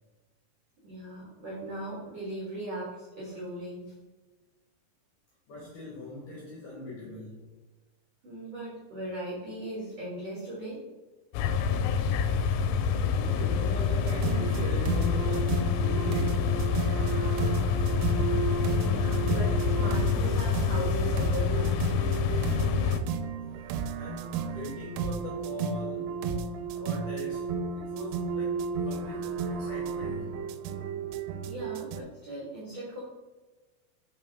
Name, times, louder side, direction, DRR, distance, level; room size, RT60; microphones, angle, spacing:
voice 1, 0.8-4.0 8.2-10.8 18.8-21.8 31.4-33.0, right 1 dB, 75° right, -6 dB, 1.4 m, -38 dB
voice 2, 5.5-7.5 12.8-16.8 23.9-26.1 26.7-27.5 27.7-30.3, left 2 dB, 65° left, -4 dB, 2.1 m, -41 dB
sound 1, 11.3-23.0, left 6 dB, 85° left, 3.0 m, -27 dB
sound 2, 14.1-32.0, right 5 dB, 90° right, 3.1 m, -33 dB
6.4 x 5.6 x 3.5 m, 1.2 s
omnidirectional pair, 5.5 m